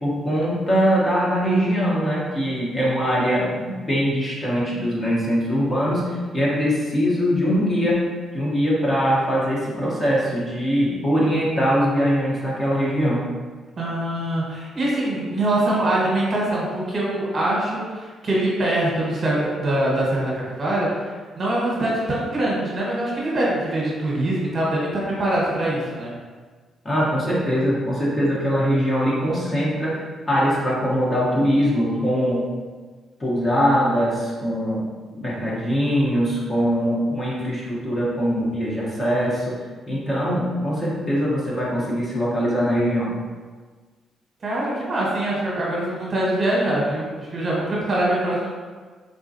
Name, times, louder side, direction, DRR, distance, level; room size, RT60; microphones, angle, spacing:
voice 1, 0.0-8.0 8.3-13.2 26.8-32.4 33.2-39.6 39.9-43.1, equal, 25° left, -6 dB, 0.9 m, -22 dB
voice 2, 13.8-26.1 44.4-48.5, right 1 dB, 40° right, -5 dB, 1.0 m, -23 dB
3.6 x 2.2 x 2.6 m, 1.5 s
cardioid pair, 90°, 0 cm